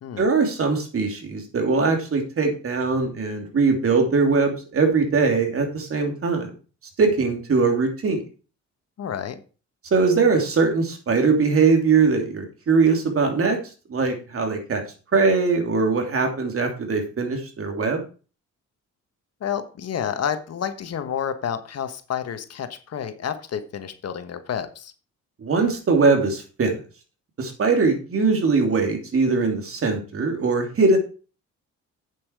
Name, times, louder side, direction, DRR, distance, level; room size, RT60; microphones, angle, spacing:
voice 1, 0.2-6.5 7.0-8.2 9.9-13.6 13.9-14.8 15.1-18.0 25.4-26.8 27.4-31.0, right 4 dB, 45° right, 4 dB, 2.9 m, -21 dB
voice 2, 9.0-9.4 19.4-24.9, left 8 dB, 55° left, 10 dB, 1.2 m, -29 dB
8.4 x 7.3 x 4.7 m, 0.36 s
cardioid pair, 90°, 30 cm